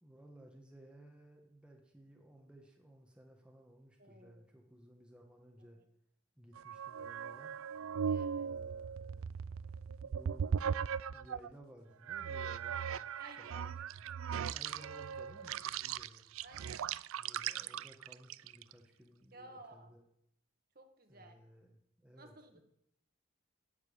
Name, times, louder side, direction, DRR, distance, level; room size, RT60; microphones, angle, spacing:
voice 1, 0.0-5.8 6.4-7.6 8.4-9.3 10.0-10.7 11.1-13.2 13.5-14.0 14.5-16.2 17.2-20.0 21.1-22.6, equal, 5° right, 1 dB, 1.4 m, -58 dB
voice 2, 4.0-4.5 8.1-8.5 13.2-13.6 16.4-16.9 19.3-19.9 20.7-21.4 22.2-22.6, right 2 dB, 45° right, 5 dB, 1.6 m, -55 dB
sound 1, 6.6-11.5 12.1-18.7, right 7 dB, 85° right, 0.4 m, -38 dB
11.5 x 7.3 x 8.7 m, 0.77 s
head